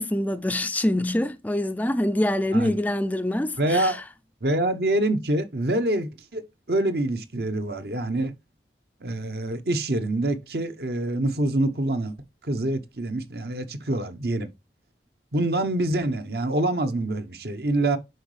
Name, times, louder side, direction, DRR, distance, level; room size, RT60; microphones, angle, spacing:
voice 1, 0.0-4.0, left 1 dB, 10° left, 0.4 m, -25 dB
voice 2, 3.6-4.0 4.4-6.4 6.7-8.3 9.0-12.1 12.4-14.5 15.3-18.0, right 1 dB, 65° right, 1.0 m, -25 dB
7.8 x 5.4 x 3.2 m
head